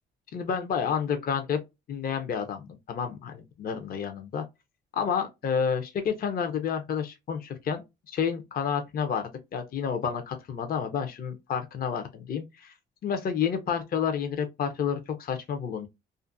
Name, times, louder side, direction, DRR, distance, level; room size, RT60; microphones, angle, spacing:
voice 1, 0.3-1.6 1.9-4.4 4.9-12.7 13.0-15.9, left 7 dB, 50° left, 0.5 m, -30 dB
2.5 x 2.5 x 2.4 m
cardioid pair, 90°, 20 cm